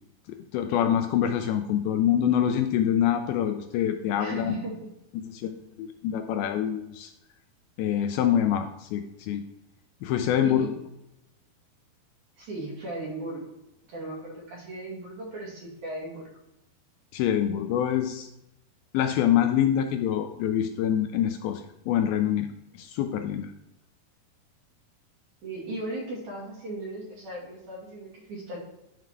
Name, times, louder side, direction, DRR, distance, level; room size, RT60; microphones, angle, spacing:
voice 1, 0.3-4.6 5.1-7.1 7.8-9.4 10.0-10.7 17.1-18.3 18.9-23.5, left 10 dB, 80° left, 7 dB, 2.3 m, -25 dB
voice 2, 4.2-4.9 10.4-10.7 12.4-13.6 13.9-16.3 25.4-28.6, right 2 dB, 55° right, -4 dB, 3.7 m, -37 dB
10.5 x 3.9 x 4.6 m, 0.89 s
omnidirectional pair, 4.5 m